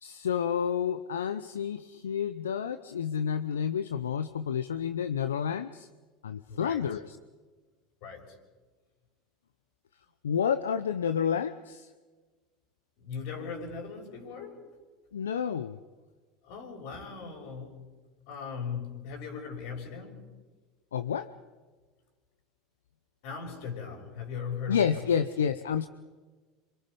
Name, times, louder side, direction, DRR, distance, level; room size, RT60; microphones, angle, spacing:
voice 1, 0.0-5.9 6.2-7.2 10.2-11.9 15.1-15.8 20.9-21.3 24.7-25.9, left 7 dB, 90° left, 11 dB, 0.7 m, -30 dB
voice 2, 6.5-7.0 8.0-8.4 13.0-14.7 16.4-17.9 18.3-20.3 23.2-25.1, left 6 dB, 65° left, 2 dB, 6.4 m, -39 dB
27.5 x 25.5 x 5.5 m, 1.3 s
hypercardioid pair, 85°, 0 cm